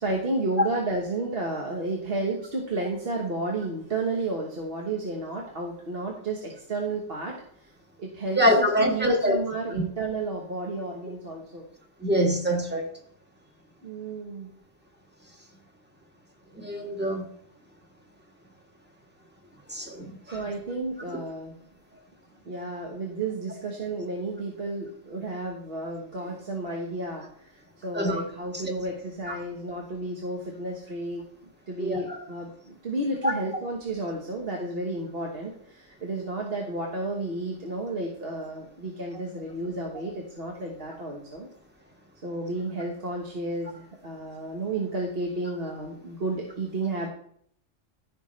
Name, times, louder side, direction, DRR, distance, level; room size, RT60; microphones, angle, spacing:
voice 1, 0.0-7.7 8.0-8.7 8.9-11.7 13.8-14.5 20.3-21.6 22.5-31.2 31.7-41.5 42.2-47.1, right 2 dB, 50° right, -1 dB, 1.5 m, -32 dB
voice 2, 8.4-9.4 12.0-12.9 16.5-17.3 19.7-20.4 27.9-28.1 29.3-29.4 31.8-32.2 33.2-33.3, equal, 10° right, 1 dB, 1.6 m, -24 dB
14.0 x 5.9 x 3.2 m, 0.64 s
omnidirectional pair, 1.3 m